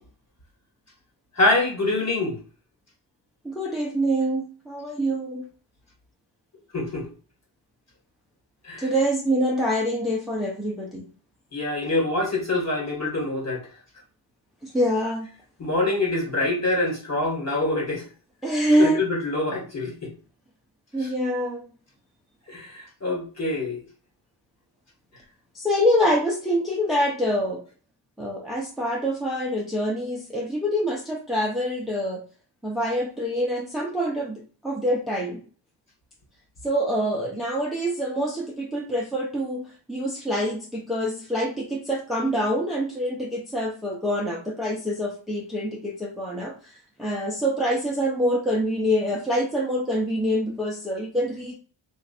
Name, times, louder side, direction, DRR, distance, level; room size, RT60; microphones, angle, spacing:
voice 1, 1.4-2.4 6.7-7.1 8.6-8.8 11.5-13.6 15.6-18.0 18.8-20.1 22.5-23.8, left 2 dB, 35° left, 1.5 m, -25 dB
voice 2, 3.4-4.4 4.7-5.4 8.8-11.0 14.6-15.3 18.4-19.0 20.9-21.6 25.5-27.6 28.2-32.2 32.6-35.4 36.6-51.5, equal, ahead, 0.7 m, -25 dB
2.9 x 2.5 x 4.2 m
wide cardioid pair, 125°, 44 cm